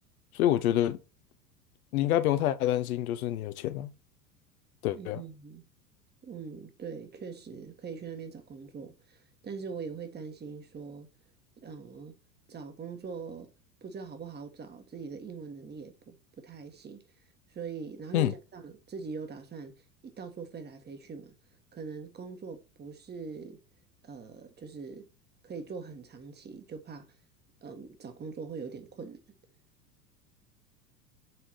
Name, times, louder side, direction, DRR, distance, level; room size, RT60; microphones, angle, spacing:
voice 1, 0.3-1.0 1.9-3.9 4.8-5.2 18.1-18.3, left 12 dB, 60° left, 0.9 m, -27 dB
voice 2, 4.9-5.6 6.2-11.1 11.6-12.2 12.5-13.5 13.8-17.0 17.5-19.7 20.0-21.3 21.7-23.6 24.0-25.1 25.4-27.0 27.6-29.2, right 5 dB, 20° right, 1.4 m, -42 dB
7.8 x 3.6 x 4.2 m
figure-of-eight pair, 80°, 49 cm